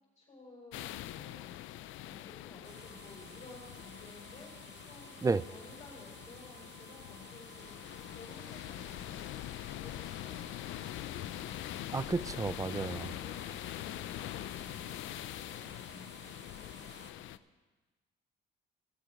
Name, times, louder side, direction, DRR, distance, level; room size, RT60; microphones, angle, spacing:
voice 1, 0.1-1.5 2.0-11.7 12.4-17.3, left 2 dB, 35° left, -5 dB, 4.5 m, -55 dB
sound 1, 0.7-17.4, left 14 dB, 80° left, 0.4 m, -44 dB
sound 2, 2.6-17.1, right 7 dB, 60° right, 1.0 m, -56 dB
voice 2, 11.9-13.1, right 4 dB, 15° right, 17 dB, 0.3 m, -31 dB
16.5 x 6.8 x 5.1 m, 1.2 s
cardioid pair, 90°, 20 cm